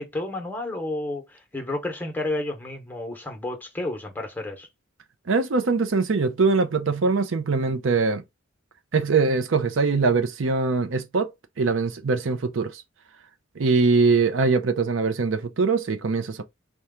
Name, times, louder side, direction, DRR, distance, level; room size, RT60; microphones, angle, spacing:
voice 1, 0.0-4.7, left 2 dB, 10° left, 0.9 m, -31 dB
voice 2, 5.3-8.2 8.9-11.3 11.6-12.8 13.6-16.4, right 4 dB, 70° right, 0.6 m, -22 dB
4.3 x 2.3 x 3.6 m
head